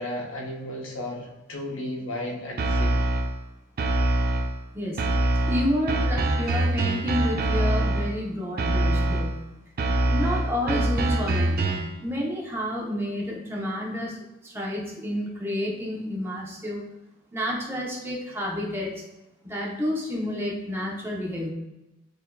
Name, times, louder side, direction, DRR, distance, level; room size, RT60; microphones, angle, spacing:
voice 1, 0.0-3.0, left 1 dB, 80° left, 0 dB, 0.8 m, -34 dB
sound 1, 2.6-3.4 3.8-4.6 5.0-8.2 8.6-9.4 9.8-12.0, right 1 dB, 50° right, 0.4 m, -24 dB
voice 2, 4.7-5.1 5.5-9.4 10.1-14.2 14.4-16.8 17.3-19.0 19.4-21.5, left 1 dB, 10° right, -3 dB, 0.8 m, -30 dB
6.5 x 2.8 x 2.2 m, 0.98 s
head